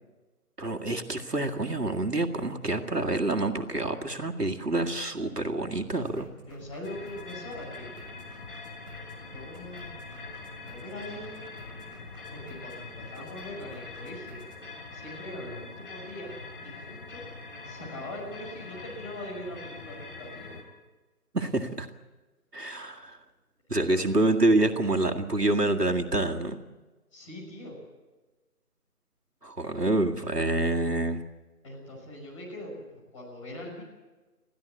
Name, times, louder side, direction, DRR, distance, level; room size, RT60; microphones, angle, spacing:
voice 1, 0.6-6.3 21.3-21.9 22.5-23.2 23.7-26.6 29.4-31.2, right 2 dB, 90° right, 4 dB, 2.1 m, -27 dB
sound 1, 5.7-14.6, equal, 15° right, 2.9 m, -51 dB
voice 2, 6.4-8.4 9.2-9.9 10.6-11.4 12.3-14.4 14.9-16.3 16.6-17.2 17.6-20.6 23.7-24.2 27.1-27.7 31.6-33.8, left 1 dB, 20° left, -4 dB, 6.0 m, -42 dB
sound 2, 6.8-20.6, left 3 dB, 35° left, 3.6 m, -43 dB
22.5 x 15.5 x 8.3 m, 1.2 s
figure-of-eight pair, 160°, 46 cm